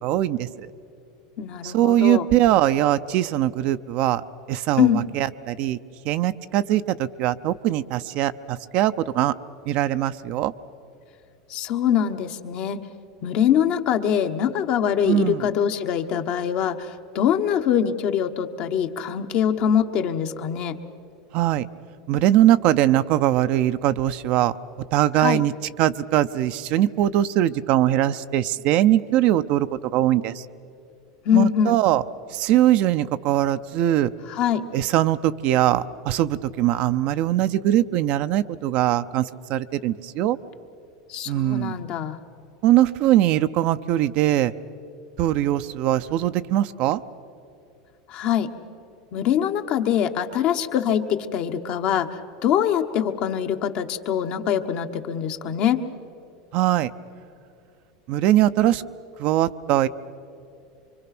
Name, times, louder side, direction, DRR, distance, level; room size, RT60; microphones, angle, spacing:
voice 1, 0.0-0.7 1.6-4.2 4.5-5.8 6.0-9.3 9.7-10.5 15.0-15.5 21.3-21.7 22.1-24.5 24.9-25.5 25.8-30.5 31.3-32.0 32.3-34.1 34.7-40.4 41.3-41.8 42.6-44.5 45.2-47.0 56.5-56.9 58.1-58.8 59.2-59.9, right 13 dB, 55° right, 11 dB, 0.6 m, -21 dB
voice 2, 1.4-2.3 4.8-5.1 11.5-12.8 13.2-20.8 25.2-25.4 31.2-31.8 34.3-34.7 41.1-42.2 48.1-48.5 49.1-55.8, left 9 dB, 55° left, 6 dB, 1.2 m, -23 dB
25.5 x 24.5 x 6.1 m, 2.6 s
hypercardioid pair, 105°, 3 cm